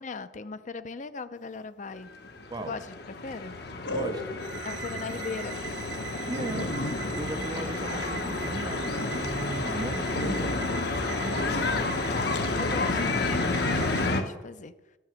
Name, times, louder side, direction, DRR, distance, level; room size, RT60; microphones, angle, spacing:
voice 1, 0.0-2.1 2.6-3.5 4.6-5.7 11.7-14.7, left 4 dB, 45° left, 12 dB, 0.5 m, -38 dB
sound 1, 2.1-14.2, left 3 dB, 65° left, 1.1 m, -30 dB
sound 2, 2.2-2.7 3.8-4.6 5.1-5.2 5.7-5.8 6.0-6.1 6.3-8.4 8.8-9.2 10.1-10.9 11.3-11.8 12.3-12.5, left 1 dB, 90° left, 1.0 m, -35 dB
voice 2, 2.5-2.8 3.9-4.4 6.3-6.7 7.1-10.6, right 2 dB, 25° right, 11 dB, 0.4 m, -37 dB
sound 3, 4.4-14.1, right 10 dB, 70° right, 0.6 m, -42 dB
12.5 x 6.1 x 7.4 m, 1.1 s
head